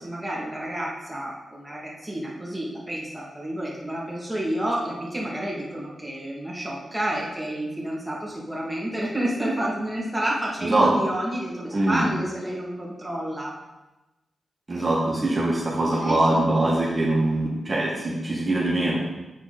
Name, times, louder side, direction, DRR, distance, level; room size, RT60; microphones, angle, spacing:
voice 1, 0.0-13.5 16.0-16.4, right 1 dB, 5° right, -5 dB, 2.4 m, -30 dB
voice 2, 11.7-12.1 14.7-19.0, right 1 dB, 35° right, -5 dB, 1.8 m, -23 dB
8.0 x 4.5 x 4.3 m, 1.0 s
cardioid pair, 60°, 0 cm